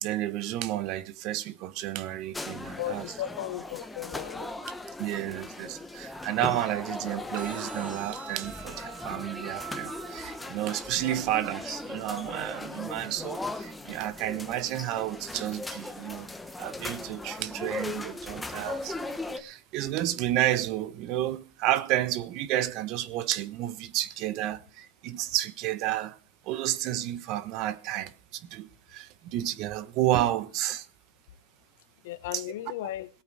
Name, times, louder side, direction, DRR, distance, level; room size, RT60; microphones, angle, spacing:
voice 1, 0.0-3.1 5.0-16.3 16.6-26.2 26.5-30.9 32.3-32.4, right 14 dB, 45° right, 1.1 m, -31 dB
sound 1, 2.3-19.4, left 2 dB, 5° left, 1.1 m, -38 dB
voice 2, 2.8-4.5 11.0-11.2 32.0-33.1, left 14 dB, 70° left, 1.1 m, -36 dB
sound 2, 7.3-15.3, right 12 dB, 70° right, 2.1 m, -47 dB
18.5 x 8.4 x 4.8 m
supercardioid pair, 135°, 0 cm